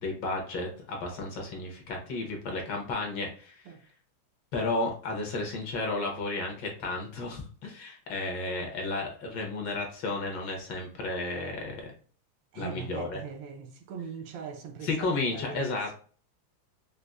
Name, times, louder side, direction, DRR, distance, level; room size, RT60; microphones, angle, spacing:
voice 1, 0.0-3.6 4.5-11.9 12.5-13.2 14.8-16.0, left 2 dB, 65° left, 1.4 m, -33 dB
voice 2, 12.5-16.0, right 6 dB, 75° right, 1.2 m, -41 dB
5.1 x 2.0 x 2.3 m
omnidirectional pair, 2.2 m